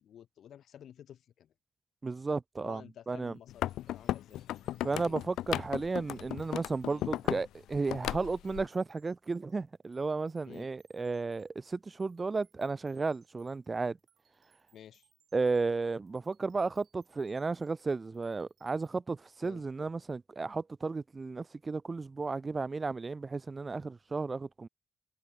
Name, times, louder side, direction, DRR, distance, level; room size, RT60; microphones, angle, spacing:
voice 1, 0.0-1.5 2.6-5.3 6.9-7.1 10.5-10.7 14.7-15.1 19.4-19.6, left 10 dB, 50° left, 5.9 m, -52 dB
voice 2, 2.0-2.8 3.1-3.3 4.8-14.0 15.3-24.7, right 4 dB, 20° right, 0.5 m, -33 dB
sound 1, 3.2-18.9, right 8 dB, 40° right, 7.2 m, -73 dB
sound 2, 3.5-7.5 7.7-8.6, left 13 dB, 85° left, 0.5 m, -35 dB
cardioid pair, 180°, 0 cm